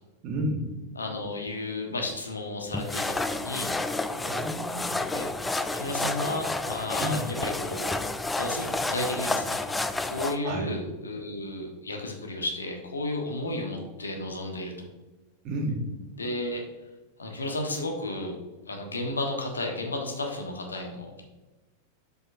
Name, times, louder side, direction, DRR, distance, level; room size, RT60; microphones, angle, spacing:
voice 1, 0.2-0.7 4.1-5.1 7.0-7.3 10.4-10.7 15.4-15.8, right 1 dB, 40° right, 2 dB, 1.3 m, -31 dB
voice 2, 1.0-3.7 5.1-5.3 5.7-7.9 8.4-9.6 10.0-14.9 16.2-16.6 17.2-18.3 18.7-21.2, left 2 dB, 75° left, 2 dB, 1.2 m, -33 dB
sound 1, 2.7-10.4, left 2 dB, 10° left, 0.4 m, -30 dB
7.6 x 5.3 x 2.6 m, 1.1 s
figure-of-eight pair, 90°, 0 cm